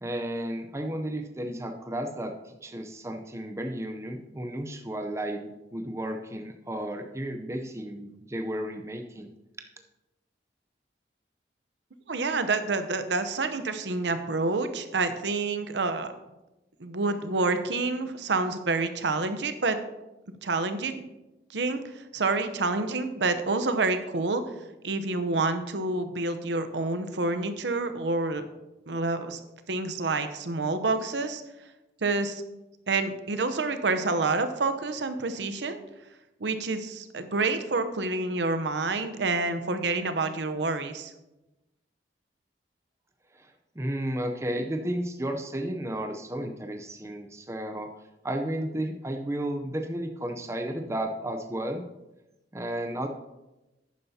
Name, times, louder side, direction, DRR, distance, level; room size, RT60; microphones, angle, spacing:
voice 1, 0.0-2.3 2.6-9.3 43.3-43.5 43.8-47.9 48.2-51.8 52.5-53.1, right 1 dB, 15° right, 4 dB, 0.6 m, -33 dB
voice 2, 12.1-16.1 16.8-19.8 20.4-21.0 21.5-24.4 24.8-28.4 28.9-29.4 29.7-31.4 32.0-32.4 32.9-35.8 36.4-41.1, right 3 dB, 80° right, 9 dB, 0.8 m, -28 dB
11.5 x 9.4 x 2.8 m, 1.0 s
head